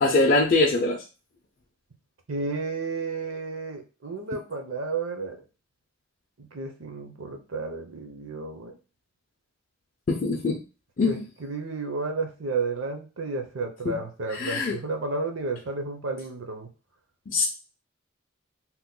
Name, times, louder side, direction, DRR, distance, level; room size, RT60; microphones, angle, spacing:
voice 1, 0.0-1.0 10.1-10.6 11.0-11.2 13.9-14.0 14.4-14.7 17.3-17.5, left 3 dB, 40° left, -2 dB, 0.4 m, -22 dB
voice 2, 2.3-5.4 6.4-8.8 11.0-16.7, right 3 dB, 75° right, 4 dB, 0.7 m, -32 dB
2.9 x 2.1 x 3.6 m, 0.33 s
head